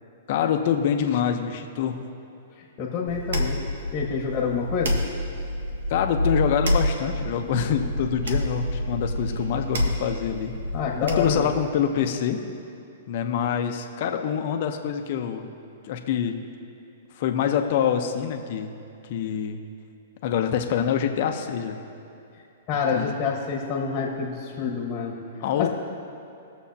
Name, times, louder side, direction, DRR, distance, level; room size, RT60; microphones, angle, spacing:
voice 1, 0.3-2.0 5.9-10.5 11.0-12.4 13.1-15.5 15.8-16.4 17.2-18.7 19.1-19.6 20.2-21.8 22.9-23.1 25.4-25.7, left 8 dB, 50° left, 5 dB, 0.9 m, -25 dB
voice 2, 2.8-3.6 3.9-5.0 10.7-11.4 22.7-25.2 25.6-25.7, left 6 dB, 30° left, -1 dB, 1.4 m, -27 dB
sound 1, 3.1-11.6, equal, 85° right, 1.4 m, -28 dB
20.5 x 7.1 x 2.9 m, 2.7 s
hypercardioid pair, 150°, 0 cm